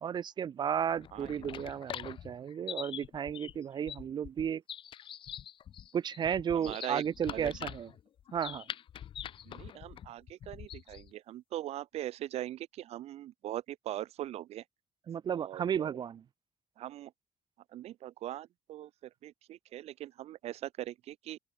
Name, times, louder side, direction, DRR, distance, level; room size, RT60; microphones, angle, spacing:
voice 1, 0.0-4.6 5.9-7.9 8.3-8.6 15.1-16.2, right 8 dB, 45° right, 0.6 m, -33 dB
sound 1, 0.9-11.1, left 10 dB, 55° left, 0.7 m, -44 dB
voice 2, 1.1-1.7 6.5-7.0 7.3-7.5 9.5-14.6 15.3-16.0 16.8-17.1 17.7-21.4, right 13 dB, 80° right, 1.3 m, -41 dB
open air
cardioid pair, 130°, 11 cm